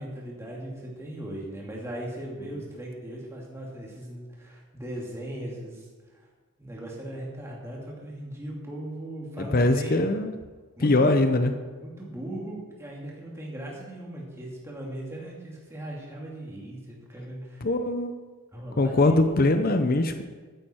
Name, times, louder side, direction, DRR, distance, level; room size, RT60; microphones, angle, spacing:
voice 1, 0.0-6.3 6.6-10.1 10.8-11.2 11.8-17.7 18.5-19.1, right 1 dB, 10° right, -3 dB, 2.4 m, -38 dB
voice 2, 9.4-10.3 10.8-11.5 17.6-18.1 18.8-20.2, left 2 dB, 40° left, 7 dB, 0.7 m, -22 dB
14.5 x 9.3 x 4.4 m, 1.4 s
head